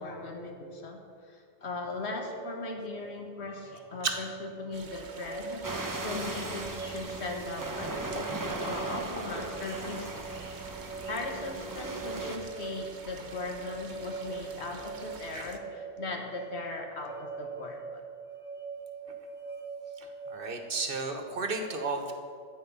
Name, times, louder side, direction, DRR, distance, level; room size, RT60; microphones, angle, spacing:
voice 1, 0.0-5.7 6.0-10.5 11.1-18.0, left 3 dB, 75° left, 3 dB, 1.7 m, -39 dB
sound 1, 2.0-20.8, right 5 dB, 25° left, 1.2 m, -43 dB
sound 2, 4.7-15.6, right 4 dB, 75° right, 1.4 m, -48 dB
sound 3, 5.6-12.4, right 2 dB, 20° right, 0.8 m, -38 dB
voice 2, 20.0-22.1, right 3 dB, 55° right, 5 dB, 1.4 m, -33 dB
13.0 x 5.2 x 8.6 m, 2.3 s
omnidirectional pair, 1.1 m